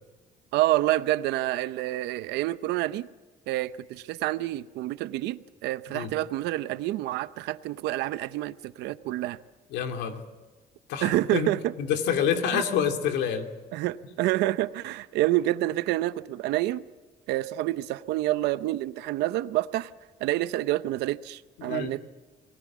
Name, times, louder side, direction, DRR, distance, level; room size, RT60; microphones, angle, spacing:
voice 1, 0.5-3.1 3.5-9.4 11.0-11.7 12.5-12.6 13.7-16.9 17.3-19.9 20.2-22.1, right 16 dB, 85° right, 14 dB, 0.8 m, -28 dB
voice 2, 9.7-10.2 10.9-11.5 11.8-13.5 21.6-21.9, left 8 dB, 90° left, 6 dB, 2.7 m, -27 dB
28.5 x 19.5 x 7.4 m, 1.2 s
cardioid pair, 110°, 17 cm